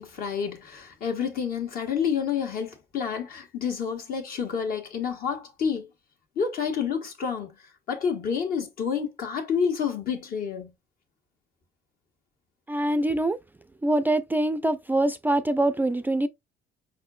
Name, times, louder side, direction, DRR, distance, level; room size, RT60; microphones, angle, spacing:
voice 1, 0.0-5.9 6.3-7.5 7.9-10.7, left 7 dB, 60° left, 1.6 m, -29 dB
voice 2, 12.7-13.4 13.8-16.3, right 1 dB, 10° right, 0.3 m, -24 dB
5.2 x 4.2 x 2.3 m
cardioid pair, 110°, 17 cm